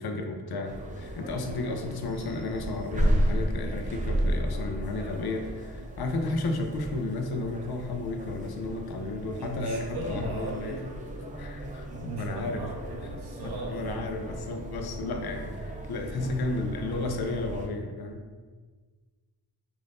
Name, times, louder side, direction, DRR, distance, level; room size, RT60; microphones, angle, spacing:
voice 1, 0.0-10.9 11.4-12.6 13.0-13.1 13.4-18.3, left 2 dB, 65° left, 4 dB, 0.5 m, -33 dB
sound 1, 0.6-17.7, right 1 dB, 20° right, 0.3 m, -34 dB
voice 2, 9.4-10.8 11.9-14.1 16.2-16.3, right 2 dB, 70° right, -2 dB, 0.6 m, -37 dB
2.5 x 2.5 x 3.4 m, 1.4 s
wide cardioid pair, 100°, 41 cm